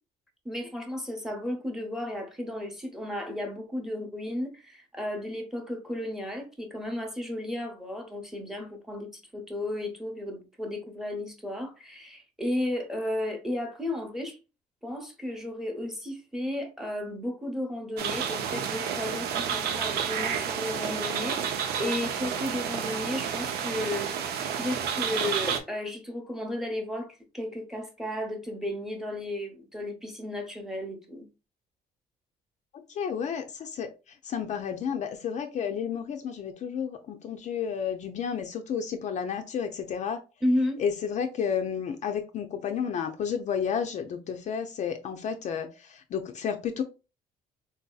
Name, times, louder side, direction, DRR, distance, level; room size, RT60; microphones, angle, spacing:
voice 1, 0.4-14.4 14.8-31.3 40.4-40.8, left 1 dB, ahead, 0.7 m, -33 dB
sound 1, 18.0-25.6, right 7 dB, 80° right, 0.5 m, -30 dB
voice 2, 32.7-33.9 34.2-40.2 40.8-46.8, left 7 dB, 45° left, 0.4 m, -31 dB
3.7 x 2.7 x 2.3 m
cardioid pair, 135°, 16 cm